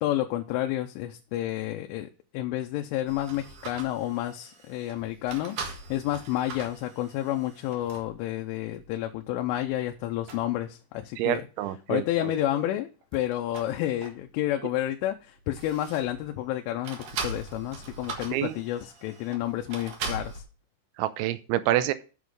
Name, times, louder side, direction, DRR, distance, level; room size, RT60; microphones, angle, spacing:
voice 1, 0.0-11.4 11.9-20.4, left 13 dB, 90° left, 4 dB, 3.2 m, -30 dB
sound 1, 3.1-8.2 8.8-8.9 9.5-9.9 10.2-10.5 13.0-14.5 14.8-16.3 16.8-20.4, right 4 dB, 60° right, 2.5 m, -40 dB
voice 2, 11.2-12.0 18.3-18.5 21.0-21.9, right 14 dB, 85° right, 13 dB, 2.9 m, -27 dB
8.4 x 7.1 x 4.7 m, 0.34 s
omnidirectional pair, 5.5 m